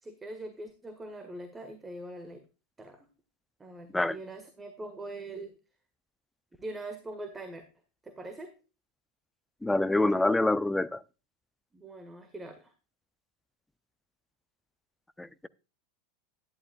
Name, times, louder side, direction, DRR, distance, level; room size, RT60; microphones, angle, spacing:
voice 1, 0.0-2.4 2.8-3.1 3.6-5.6 6.6-7.6 8.0-8.5 11.7-12.7, right 2 dB, 15° right, 1.8 m, -42 dB
voice 2, 9.6-11.0 15.2-15.5, left 2 dB, 5° left, 0.6 m, -26 dB
11.5 x 11.0 x 2.4 m
hypercardioid pair, 90°, 0 cm